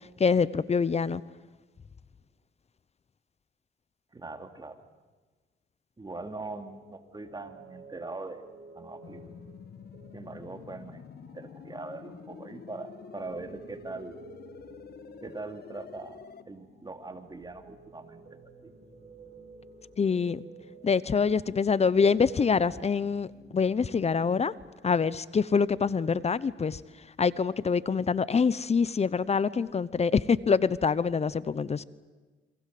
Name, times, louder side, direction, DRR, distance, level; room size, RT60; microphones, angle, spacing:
voice 1, 0.2-1.2 20.0-20.5 20.8-23.3 23.5-24.5 24.8-26.8 27.2-31.8, left 5 dB, 30° left, 18 dB, 0.9 m, -25 dB
voice 2, 4.1-4.8 6.0-8.5 8.7-9.3 10.1-14.2 15.2-16.2 16.5-18.2 18.6-18.7, right 3 dB, 20° right, 6 dB, 2.8 m, -41 dB
sound 1, 6.0-24.6, right 3 dB, 40° right, 7.3 m, -53 dB
sound 2, 9.0-16.4, left 7 dB, 55° left, 1.4 m, -48 dB
28.5 x 23.0 x 7.8 m, 1.3 s
cardioid pair, 90°, 20 cm